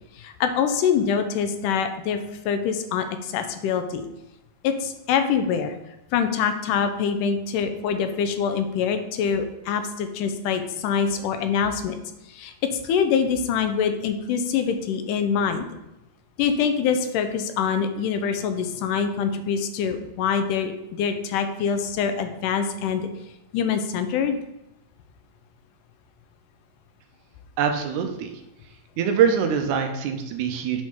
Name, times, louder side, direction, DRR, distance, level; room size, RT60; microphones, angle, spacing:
voice 1, 0.2-2.2 2.5-4.1 4.6-5.8 6.1-12.0 12.3-12.5 12.8-15.7 16.4-23.1 23.5-24.4, left 7 dB, 85° left, 8 dB, 2.2 m, -24 dB
voice 2, 27.6-28.3 29.0-30.8, right 7 dB, 80° right, 5 dB, 2.0 m, -23 dB
7.7 x 4.1 x 3.6 m, 0.92 s
omnidirectional pair, 3.6 m